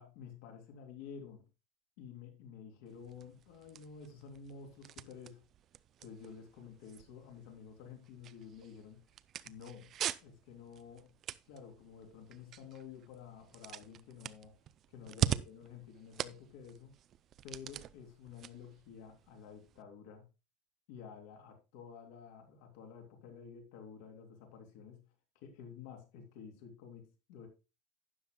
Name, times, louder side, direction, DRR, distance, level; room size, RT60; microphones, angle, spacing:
voice 1, 0.0-1.4 2.0-5.4 6.0-9.0 9.4-9.9 10.2-11.1 11.4-14.5 14.9-16.9 17.4-20.3 20.9-25.0 25.4-27.5, left 6 dB, 60° left, 3.1 m, -51 dB
sound 1, 2.9-19.8, right 11 dB, 30° right, 0.4 m, -43 dB
12.5 x 9.5 x 2.2 m
cardioid pair, 175°, 0 cm